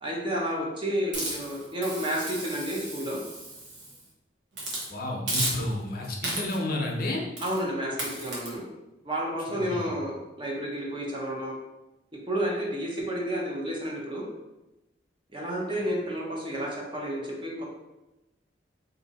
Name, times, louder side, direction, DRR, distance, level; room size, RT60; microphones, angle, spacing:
voice 1, 0.0-3.2 7.4-8.6 9.0-11.5 12.3-14.2 15.3-17.6, equal, 30° right, -3 dB, 0.8 m, -31 dB
Hiss, 1.1-4.0 4.5-4.9 5.3-5.9 6.2-6.7 7.4-7.6 8.0-8.5, right 2 dB, 75° right, 1.0 m, -34 dB
voice 2, 4.9-7.2 9.5-9.9, left 1 dB, 55° left, 0 dB, 0.6 m, -31 dB
2.7 x 2.7 x 3.9 m, 0.97 s
head